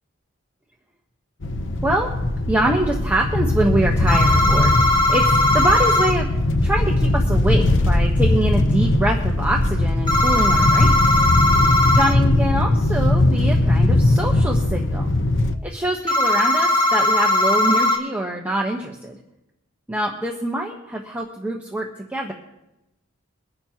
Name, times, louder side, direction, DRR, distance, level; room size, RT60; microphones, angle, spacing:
sound 1, 1.4-15.6, left 1 dB, 60° left, 0.8 m, -19 dB
voice 1, 2.5-5.2 5.5-6.3 6.6-11.0 12.0-15.1 15.6-19.2 19.9-22.3, right 1 dB, 10° right, -1 dB, 1.0 m, -24 dB
sound 2, 4.1-6.1 10.1-12.1 16.1-18.0, left 2 dB, 20° left, 2.0 m, -18 dB
23.5 x 10.5 x 2.9 m, 0.93 s
head